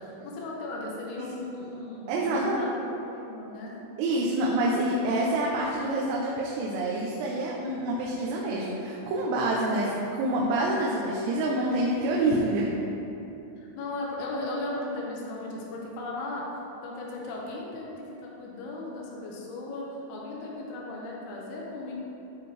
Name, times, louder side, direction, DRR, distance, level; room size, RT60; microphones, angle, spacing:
voice 1, 0.0-2.8 3.1-3.7 9.4-9.9 13.6-16.4 16.8-21.9, left 2 dB, 80° left, -3 dB, 2.3 m, -36 dB
voice 2, 2.1-2.6 4.0-12.7, right 1 dB, 90° right, -4 dB, 3.4 m, -27 dB
12.5 x 4.4 x 3.3 m, 2.9 s
omnidirectional pair, 5.9 m